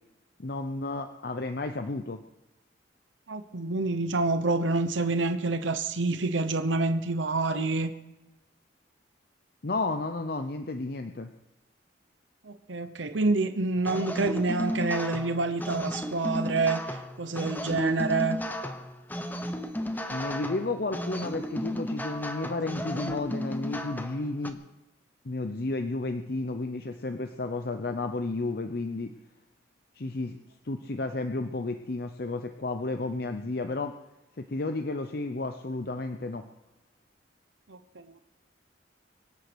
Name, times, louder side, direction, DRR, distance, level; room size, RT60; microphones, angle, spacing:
voice 1, 0.4-2.2 9.6-11.3 20.1-24.6 25.2-29.1 29.9-34.0 34.4-36.4, left 2 dB, 55° left, 7 dB, 0.7 m, -32 dB
voice 2, 3.3-7.9 12.4-18.4 37.7-38.2, right 3 dB, 80° right, 9 dB, 0.9 m, -27 dB
sound 1, 13.8-24.5, left 1 dB, 10° left, 0.9 m, -34 dB
24.5 x 8.1 x 6.2 m, 0.98 s
head